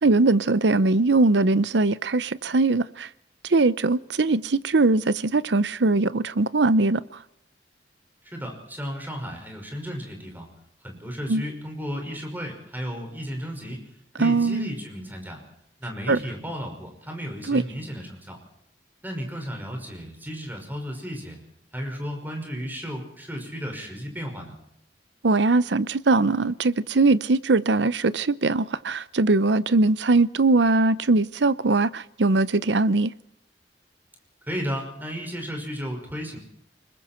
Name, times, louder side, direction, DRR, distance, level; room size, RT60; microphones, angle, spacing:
voice 1, 0.0-3.1 3.5-7.1 11.3-11.4 14.2-14.7 16.1-16.2 17.5-17.6 25.2-33.1, right 3 dB, 70° right, 0.7 m, -21 dB
voice 2, 8.2-10.5 10.8-13.8 14.2-15.4 15.8-18.4 19.0-21.4 21.7-24.5 34.5-36.4, equal, 10° right, 5.5 m, -34 dB
29.5 x 21.0 x 4.4 m
head